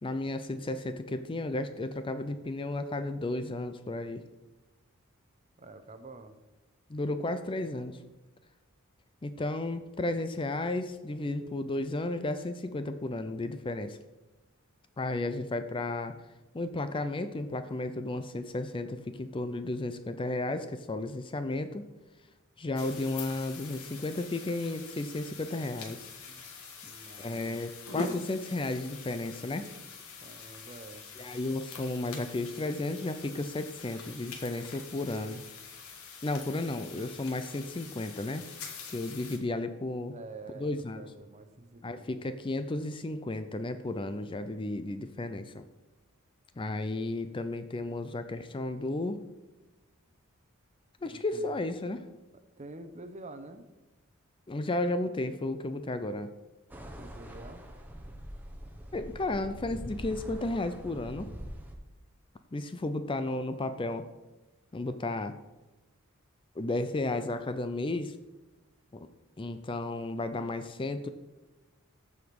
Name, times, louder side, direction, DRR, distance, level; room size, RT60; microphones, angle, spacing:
voice 1, 0.0-4.2 6.9-8.0 9.2-14.0 15.0-16.1 16.5-21.9 22.6-26.0 27.2-29.7 31.2-35.4 36.2-38.4 38.9-40.2 40.6-41.0 41.8-45.6 46.6-49.2 51.0-52.0 54.5-56.3 58.9-61.3 62.5-64.1 64.7-65.4 66.6-68.2 68.9-69.1 69.4-71.1, left 2 dB, 25° left, 10 dB, 0.5 m, -33 dB
voice 2, 5.6-6.4 15.2-15.3 26.3-27.7 30.2-31.1 40.1-40.7 40.9-42.2 51.0-51.6 52.3-53.7 57.0-57.7, right 2 dB, 35° right, 8 dB, 0.8 m, -48 dB
sound 1, 22.8-39.4, left 4 dB, 80° left, 1.7 m, -44 dB
sound 2, 56.7-61.7, equal, 10° right, 1.0 m, -43 dB
14.0 x 4.9 x 5.3 m, 1.1 s
head